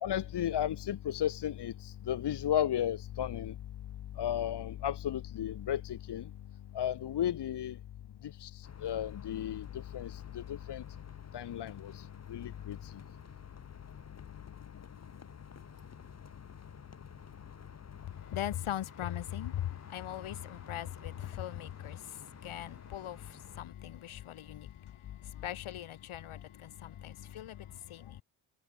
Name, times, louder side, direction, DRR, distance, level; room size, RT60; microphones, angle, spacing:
voice 1, 0.0-3.5 4.2-6.3 6.7-7.8 8.4-10.8 11.3-12.9, left 10 dB, 55° left, 1.2 m, -34 dB
sound 1, 8.6-23.6, left 5 dB, 30° left, 2.6 m, -52 dB
voice 2, 18.0-28.2, left 11 dB, 75° left, 2.3 m, -40 dB
wide cardioid pair, 150°, 49 cm